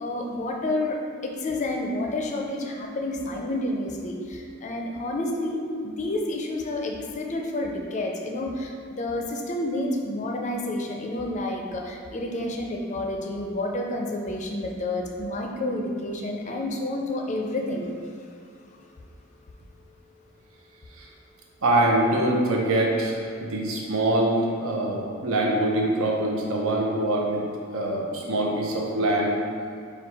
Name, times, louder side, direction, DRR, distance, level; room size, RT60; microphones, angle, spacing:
voice 1, 0.0-17.9, left 1 dB, 35° left, 1 dB, 0.4 m, -29 dB
voice 2, 21.6-27.5 27.7-29.4, right 1 dB, 75° right, -1 dB, 0.7 m, -24 dB
4.4 x 2.3 x 4.6 m, 2.4 s
head